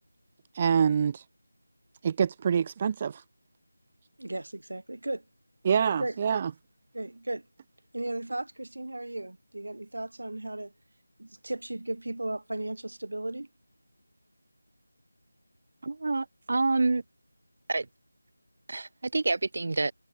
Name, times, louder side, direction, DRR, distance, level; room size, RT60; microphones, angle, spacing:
voice 1, 0.5-1.2 2.0-3.2 5.6-6.5, right 7 dB, 10° right, 0.4 m, -25 dB
voice 2, 4.2-5.2 6.0-6.2 6.9-7.5 7.9-10.7 11.2-13.5, right 1 dB, 65° right, 2.6 m, -35 dB
voice 3, 15.8-17.0 17.7-17.9 18.7-19.9, right 3 dB, 30° right, 0.9 m, -27 dB
figure-of-eight pair, 180°, 0 cm